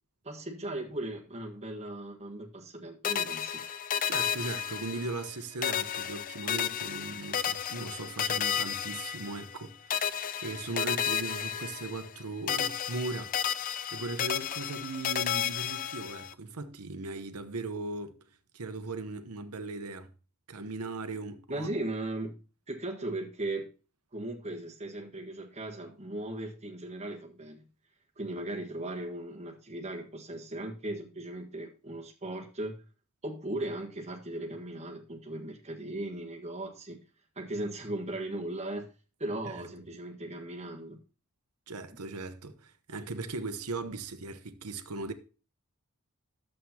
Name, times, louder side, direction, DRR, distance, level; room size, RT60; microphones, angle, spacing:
voice 1, 0.2-3.6 21.5-22.4 22.7-23.7 24.1-27.7 28.2-32.8 33.2-37.0 37.3-38.9 39.2-41.0, right 1 dB, 30° right, 1.5 m, -37 dB
sound 1, 3.0-5.3 5.6-9.6 9.9-12.2 12.5-16.3, left 9 dB, 40° left, 0.4 m, -32 dB
voice 2, 4.1-18.2 18.5-20.1 20.5-21.7 39.5-39.6 41.7-45.1, right 3 dB, 85° right, 1.0 m, -38 dB
11.5 x 7.6 x 2.9 m
head